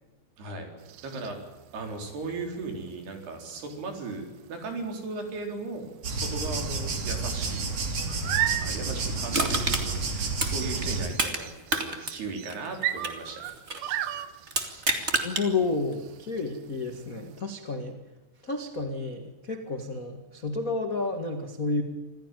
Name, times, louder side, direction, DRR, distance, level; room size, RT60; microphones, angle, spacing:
voice 1, 0.4-0.7 1.0-1.4 1.7-7.7 8.6-13.5, right 3 dB, 65° right, 4 dB, 6.2 m, -37 dB
sound 1, 0.8-17.4, right 12 dB, 90° right, 3.4 m, -38 dB
sound 2, 6.0-11.1, right 3 dB, 40° right, 3.6 m, -30 dB
Crushing, 9.3-11.4 11.7-13.9 14.5-15.5 15.9-16.0, right 2 dB, 25° right, 1.7 m, -29 dB
voice 2, 15.2-18.0 18.4-21.8, left 3 dB, 65° left, 4 dB, 0.8 m, -31 dB
27.0 x 16.0 x 9.3 m, 1.1 s
omnidirectional pair, 5.0 m